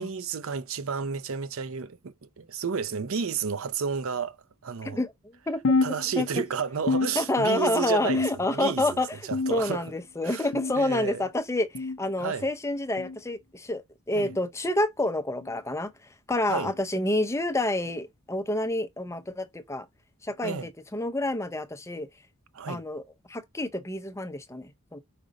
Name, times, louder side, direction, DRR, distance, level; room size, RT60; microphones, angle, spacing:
voice 1, 0.0-4.4 4.6-5.0 5.8-9.9 10.2-10.5 10.8-11.3 12.2-12.5 14.1-14.4 16.5-16.7 20.4-20.7 22.5-22.8, right 5 dB, 65° right, 0.6 m, -31 dB
sound 1, 5.6-6.5 6.9-7.7 8.1-8.7 9.3-9.9 10.5-10.9 11.7-12.0 13.0-13.2 14.2-14.4 15.4-15.6 16.6-16.8 17.8-18.0 19.1-19.2 20.3-20.4, left 3 dB, 60° left, 0.5 m, -29 dB
voice 2, 7.1-9.1 9.5-13.8 14.1-15.9 16.3-19.9 20.2-20.6 20.9-22.1 22.7-23.0 23.3-25.0, left 1 dB, 15° left, 0.6 m, -28 dB
5.0 x 3.9 x 5.1 m
head